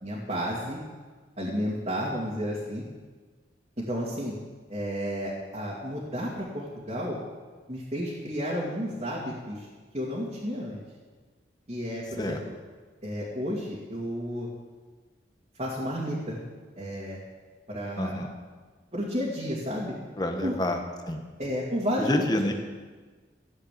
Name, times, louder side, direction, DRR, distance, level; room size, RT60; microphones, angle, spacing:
voice 1, 0.0-0.8 1.4-2.8 3.8-4.3 4.7-7.2 7.7-9.7 9.9-10.8 11.7-12.4 13.0-14.5 15.6-16.4 16.8-17.2 17.7-18.2 18.9-19.9 20.4-20.5 21.4-22.3, equal, 35° right, -6 dB, 2.3 m, -31 dB
voice 2, 18.0-18.3 20.2-20.8 21.1-21.2 22.0-22.5, left 1 dB, 20° left, 4 dB, 1.3 m, -28 dB
14.0 x 7.9 x 8.6 m, 1.4 s
head